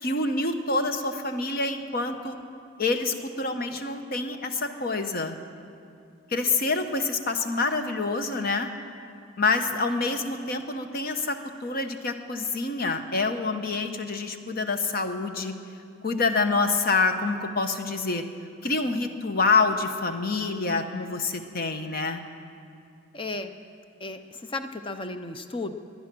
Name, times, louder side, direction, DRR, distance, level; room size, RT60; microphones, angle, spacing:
voice 1, 0.0-2.4 2.8-5.4 6.3-8.7 9.4-15.5 16.0-18.2 18.6-22.2, left 3 dB, 45° left, 7 dB, 0.9 m, -27 dB
voice 2, 23.1-23.5 24.0-25.7, left 2 dB, 25° left, 8 dB, 0.5 m, -34 dB
20.0 x 10.5 x 6.1 m, 2.5 s
head